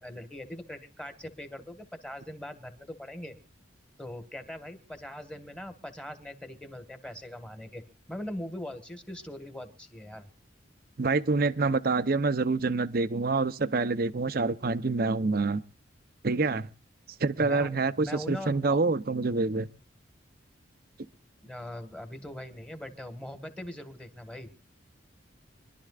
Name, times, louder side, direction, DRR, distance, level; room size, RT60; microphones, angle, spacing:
voice 1, 0.0-3.4 4.0-7.8 8.1-10.3 17.4-18.8 21.4-24.5, left 1 dB, 5° left, 1.6 m, -41 dB
voice 2, 11.0-15.6 16.2-16.7 17.2-19.7, right 3 dB, 50° right, 0.7 m, -26 dB
25.5 x 12.0 x 2.4 m
head